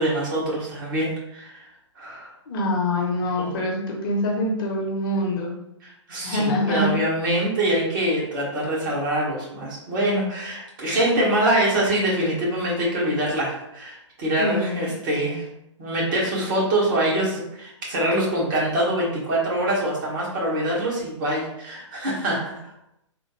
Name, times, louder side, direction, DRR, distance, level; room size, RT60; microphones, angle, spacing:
voice 1, 0.0-1.7 2.0-2.3 3.4-3.6 5.8-15.5 15.8-22.7, right 1 dB, 40° right, -4 dB, 1.3 m, -24 dB
voice 2, 2.5-5.5 6.2-6.9 14.4-14.9, left 1 dB, 45° left, -1 dB, 0.8 m, -25 dB
3.3 x 2.1 x 3.1 m, 0.83 s
figure-of-eight pair, 120°, 16 cm